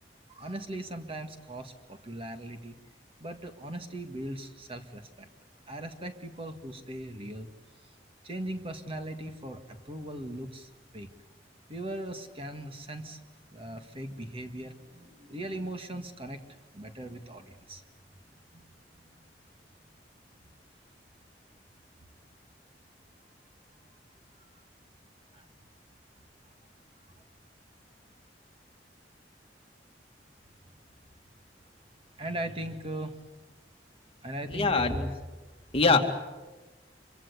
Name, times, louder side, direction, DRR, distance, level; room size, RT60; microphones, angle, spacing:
voice 1, 0.3-2.8 3.2-5.3 5.7-7.5 8.2-11.1 11.7-13.2 13.5-17.8 18.5-18.6 19.0-19.2 25.3-25.4 32.2-33.2 34.2-35.1 35.9-36.0, right 1 dB, 35° right, 6 dB, 1.9 m, -39 dB
voice 2, 34.5-34.9 35.7-36.0, left 4 dB, 35° left, 4 dB, 2.3 m, -22 dB
26.5 x 24.0 x 8.3 m, 1.2 s
head